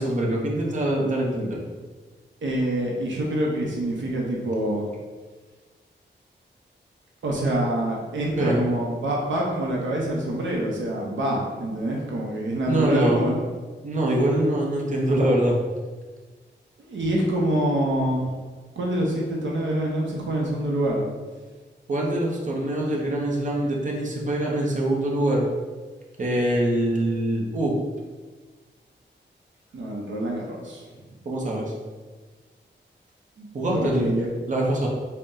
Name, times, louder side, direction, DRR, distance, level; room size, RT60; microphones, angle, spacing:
voice 1, 0.0-1.6 8.4-8.6 12.7-13.2 13.8-15.6 21.9-25.4 26.2-27.7 31.3-31.7 33.5-34.1 34.5-34.9, right 1 dB, 40° right, -2 dB, 0.7 m, -24 dB
voice 2, 2.4-4.9 7.2-13.4 16.8-18.3 18.8-21.0 29.7-30.8 33.4-34.3, right 1 dB, 75° right, -2 dB, 0.7 m, -26 dB
3.9 x 2.1 x 3.7 m, 1.4 s
wide cardioid pair, 100°, 19 cm